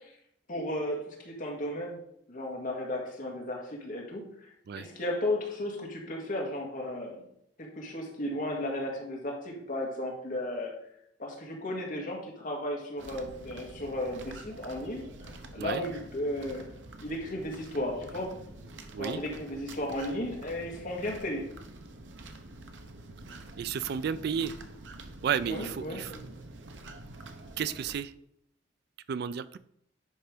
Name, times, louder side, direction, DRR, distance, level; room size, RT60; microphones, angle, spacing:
voice 1, 0.5-2.0 2.3-4.5 4.8-7.3 7.6-10.7 11.2-16.7 17.0-18.3 19.0-21.5 25.5-26.2, left 1 dB, 50° left, -1 dB, 1.9 m, -34 dB
sound 1, 13.0-27.9, right 2 dB, 85° right, 0.9 m, -47 dB
voice 2, 23.6-24.5 25.2-26.1 27.6-28.1 29.1-29.6, right 7 dB, 60° right, 15 dB, 0.4 m, -32 dB
10.0 x 3.4 x 5.0 m, 0.73 s
head